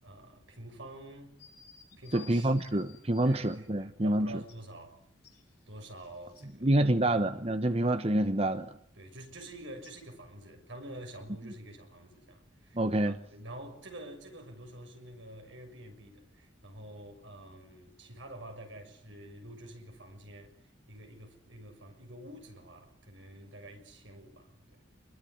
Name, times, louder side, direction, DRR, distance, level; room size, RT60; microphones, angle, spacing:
voice 1, 0.0-1.3 2.0-2.8 3.2-5.0 5.7-7.2 9.0-24.8, right 1 dB, 80° right, 6.6 m, -48 dB
sound 1, 1.4-3.6 4.5-4.6 5.2-6.5 9.8-9.9, left 7 dB, 50° left, 6.5 m, -56 dB
voice 2, 2.1-4.3 6.6-8.8 12.7-13.2, right 1 dB, 30° right, 1.1 m, -27 dB
27.0 x 22.0 x 9.5 m
head